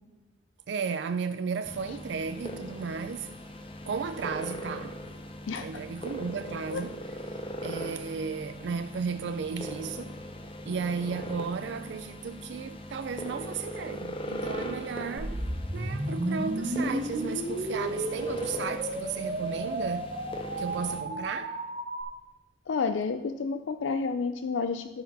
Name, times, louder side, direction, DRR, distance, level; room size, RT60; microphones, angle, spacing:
voice 1, 0.7-3.3 3.9-5.0 5.6-7.2 7.6-10.2 10.6-15.4 15.7-20.2 20.6-21.6, right 5 dB, 65° right, 0.4 m, -34 dB
sound 1, 1.6-21.0, equal, 30° left, 0.8 m, -40 dB
voice 2, 5.5-5.8 6.7-6.8 22.7-25.0, left 5 dB, 90° left, 0.4 m, -30 dB
sound 2, 15.2-22.0, right 1 dB, 50° right, 1.4 m, -33 dB
12.5 x 4.7 x 5.4 m
head